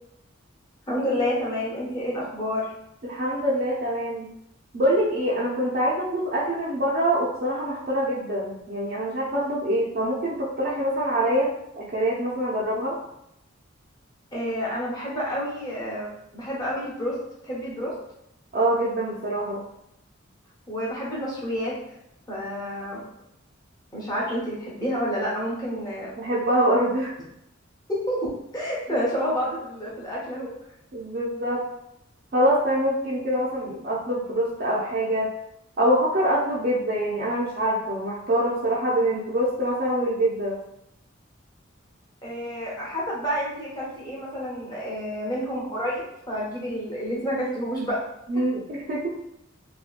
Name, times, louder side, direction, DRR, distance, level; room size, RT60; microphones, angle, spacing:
voice 1, 0.9-2.6 14.3-17.2 17.4-17.9 20.7-21.7 22.3-23.0 23.9-26.1 27.9-30.5 42.2-48.0, equal, 20° left, -5 dB, 0.8 m, -29 dB
voice 2, 3.0-4.3 4.7-11.5 11.8-13.0 18.5-19.6 26.2-27.1 30.9-31.6 32.3-35.3 35.8-40.6 48.3-49.1, right 1 dB, 45° right, -6 dB, 0.4 m, -24 dB
2.7 x 2.2 x 2.4 m, 0.80 s
head